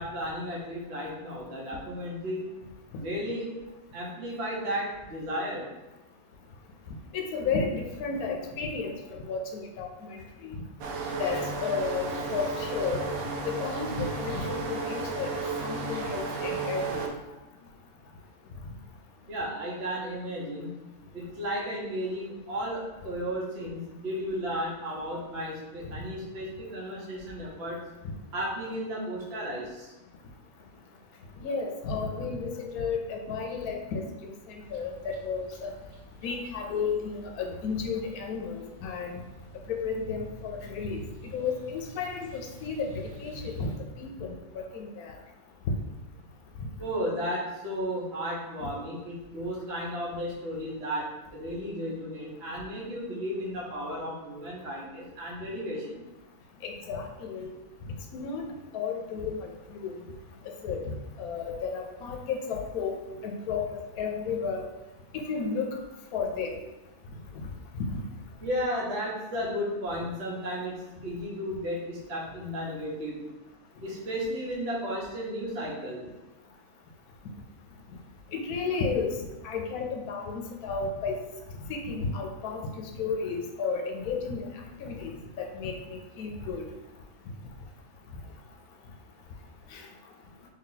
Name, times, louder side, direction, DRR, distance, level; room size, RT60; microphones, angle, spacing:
voice 1, 0.0-2.5 3.0-3.5 3.9-5.7 19.3-20.7 21.1-27.8 28.3-29.9 46.8-56.0 68.4-70.7 71.0-73.2 73.8-76.1, equal, 50° right, -5 dB, 1.1 m, -34 dB
voice 2, 7.1-9.0 9.2-10.6 11.2-13.0 13.5-17.1 28.0-28.1 31.4-35.7 36.2-39.2 39.7-41.0 41.3-43.7 44.0-45.1 48.6-48.7 56.6-57.5 57.8-58.4 58.7-60.0 60.6-60.8 61.2-64.7 65.1-65.7 66.1-66.6 67.3-67.4 67.8-67.9 78.3-81.2 81.7-84.5 84.8-86.6 89.7-89.9, left 5 dB, 90° left, 2 dB, 1.1 m, -33 dB
sound 1, 10.8-17.1, right 3 dB, 80° right, 1.0 m, -33 dB
sound 2, 34.6-43.8, equal, 65° right, 0.3 m, -49 dB
3.3 x 2.8 x 3.8 m, 1.0 s
omnidirectional pair, 1.5 m